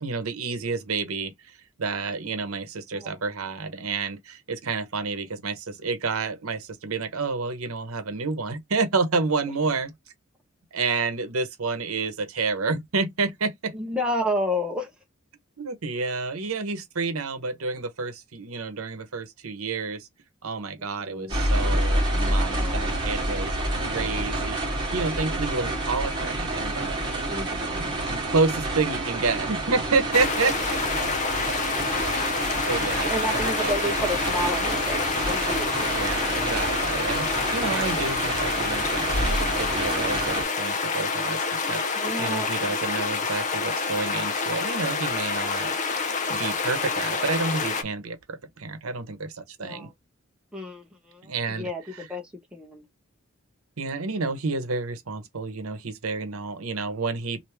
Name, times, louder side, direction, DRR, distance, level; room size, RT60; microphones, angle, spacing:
voice 1, 0.0-9.9 10.7-13.7 15.6-20.1 20.4-27.0 27.7-30.8 32.7-33.9 35.9-45.8 46.3-49.9 51.2-51.7 53.8-57.4, right 4 dB, 90° right, 0.9 m, -29 dB
voice 2, 13.7-14.9 20.8-21.4 22.5-22.9 27.3-28.0 32.5-32.6 33.1-35.9 42.0-42.8 49.6-49.9 50.5-51.3 51.6-52.9, equal, 5° right, 1.0 m, -32 dB
sound 1, 21.3-40.4, right 1 dB, 20° right, 1.7 m, -28 dB
sound 2, 30.1-47.8, left 4 dB, 35° left, 0.6 m, -28 dB
3.3 x 2.7 x 3.0 m
head